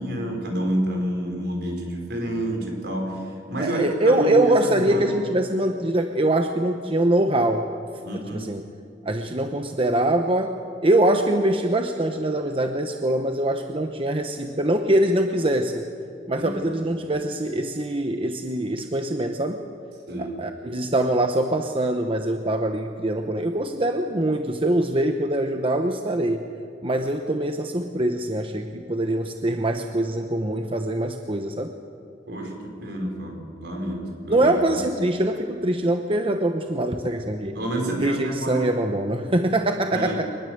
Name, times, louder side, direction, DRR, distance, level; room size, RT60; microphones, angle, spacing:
voice 1, 0.0-5.3 8.0-8.5 16.4-16.6 20.1-20.4 32.3-34.5 37.5-38.7 39.9-40.2, right 1 dB, 65° right, 2 dB, 5.1 m, -29 dB
voice 2, 3.6-7.7 8.3-8.6 9.0-15.9 16.3-19.6 20.2-26.4 26.8-31.7 34.3-37.6 38.0-40.3, right 1 dB, 30° right, 6 dB, 1.0 m, -23 dB
24.0 x 20.0 x 8.0 m, 2.5 s
head